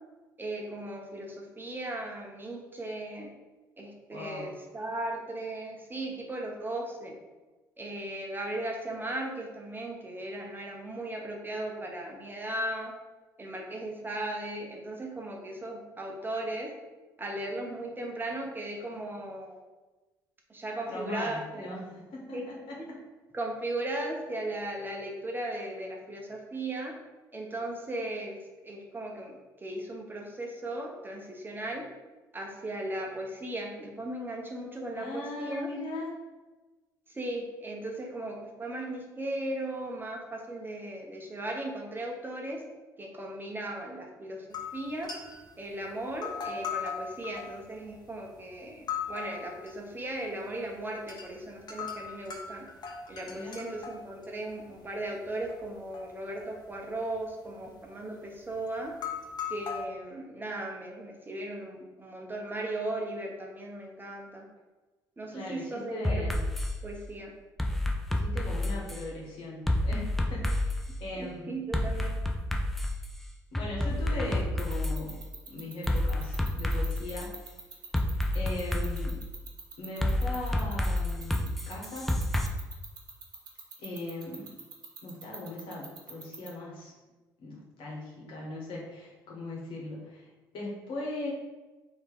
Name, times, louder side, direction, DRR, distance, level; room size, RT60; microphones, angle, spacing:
voice 1, 0.4-3.3 3.8-7.2 7.8-12.9 13.4-16.7 17.2-19.6 20.5-21.8 22.3-22.5 22.8-22.9 23.3-27.0 27.3-28.4 28.6-29.4 29.6-31.8 32.3-35.7 37.1-42.6 43.0-44.5 44.7-45.1 45.6-52.7 53.1-58.9 59.5-64.5 65.2-66.3 66.8-67.3 71.1-72.2, right 1 dB, 20° right, 0 dB, 1.0 m, -37 dB
voice 2, 4.1-4.5 20.9-21.8 22.1-23.0 34.9-36.1 53.2-53.6 65.3-66.4 68.1-70.7 71.0-71.6 73.5-75.2 75.5-77.3 78.3-79.2 79.8-82.2 83.8-84.5 85.0-86.9 87.4-90.3 90.5-91.3, left 2 dB, 60° left, -3 dB, 1.4 m, -39 dB
sound 1, 44.5-45.6 46.0-48.2 48.7-49.7 50.1-50.7 51.0-51.3 51.7-55.0 55.3-56.0 56.4-57.2 57.4-57.7 58.4-58.5 58.9-59.9, left 7 dB, 45° left, 0.9 m, -38 dB
sound 2, 66.0-66.7 67.6-69.0 69.7-70.8 71.7-73.0 73.5-75.0 75.9-77.3 77.9-79.1 80.0-82.5, left 1 dB, ahead, 0.6 m, -29 dB
sound 3, 74.6-86.5, right 6 dB, 45° right, 1.0 m, -44 dB
3.3 x 2.9 x 4.6 m, 1.2 s
hypercardioid pair, 60°, 10 cm